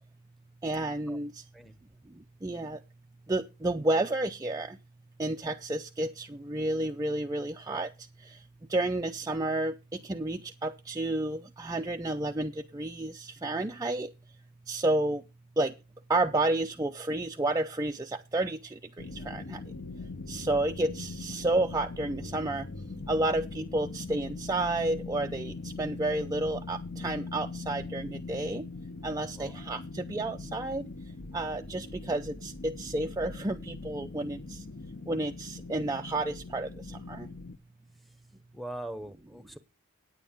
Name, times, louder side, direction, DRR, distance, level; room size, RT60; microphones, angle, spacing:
voice 1, 0.6-1.3 2.4-2.8 3.3-4.8 5.2-7.9 8.7-14.1 14.7-15.2 15.6-15.7 16.1-18.6 19.3-19.6 20.3-22.6 23.1-28.7 29.0-30.8 31.3-34.4 35.1-36.7 37.1-37.3, right 2 dB, 15° right, 4 dB, 0.5 m, -30 dB
sound 1, 19.0-37.6, left 3 dB, 50° left, 0.9 m, -41 dB
voice 2, 29.2-29.5 38.5-39.6, right 1 dB, ahead, 13 dB, 0.9 m, -41 dB
9.4 x 9.2 x 5.2 m, 0.28 s
head